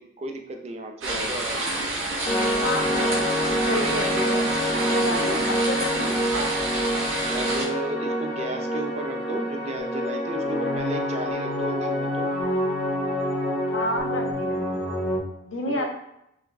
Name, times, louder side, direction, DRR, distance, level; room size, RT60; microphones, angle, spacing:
voice 1, 0.2-1.6 5.0-5.5 7.3-12.3 15.7-15.9, right 2 dB, 35° right, 4 dB, 0.3 m, -33 dB
sound 1, 1.0-7.7, right 2 dB, 90° right, 0.7 m, -28 dB
sound 2, 2.2-15.2, equal, 55° left, 0.9 m, -26 dB
voice 2, 2.6-4.5 4.9-6.1 13.7-14.7 15.4-15.9, left 2 dB, 80° left, 2 dB, 0.6 m, -30 dB
3.9 x 2.5 x 2.2 m, 0.80 s
head